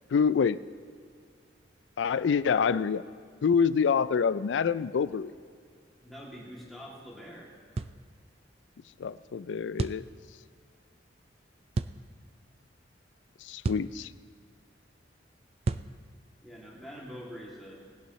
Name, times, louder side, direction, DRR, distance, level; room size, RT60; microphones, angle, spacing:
voice 1, 0.1-0.6 2.0-3.0 3.4-5.3 9.0-10.0 13.5-14.1, left 6 dB, 80° left, 16 dB, 0.4 m, -26 dB
voice 2, 6.0-7.5 16.4-17.8, equal, ahead, -5 dB, 2.6 m, -45 dB
sound 1, 7.8-8.0 9.8-10.1 11.7-12.0 13.6-13.9 15.6-15.9, right 3 dB, 35° right, 0.3 m, -31 dB
19.5 x 11.0 x 3.2 m, 2.2 s
head